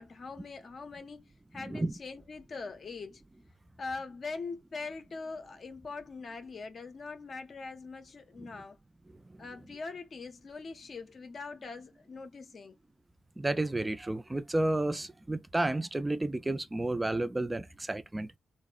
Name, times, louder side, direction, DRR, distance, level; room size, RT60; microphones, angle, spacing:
voice 1, 0.0-3.2 3.8-8.8 9.4-12.7, left 4 dB, 50° left, 0.5 m, -42 dB
voice 2, 13.4-18.4, right 2 dB, 15° right, 0.3 m, -31 dB
2.9 x 2.0 x 2.3 m
cardioid pair, 85°, 0 cm